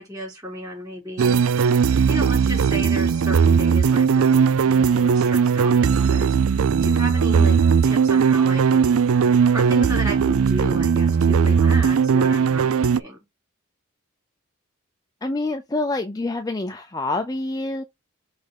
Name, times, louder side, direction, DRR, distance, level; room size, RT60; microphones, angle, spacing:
voice 1, 0.0-1.4 2.1-6.4 6.8-7.6 7.8-9.0 9.5-13.2, equal, 15° right, 4.1 m, -33 dB
sound 1, 1.2-13.0, right 6 dB, 80° right, 0.4 m, -18 dB
voice 2, 15.2-17.8, left 2 dB, 15° left, 0.5 m, -27 dB
6.1 x 3.4 x 4.9 m
head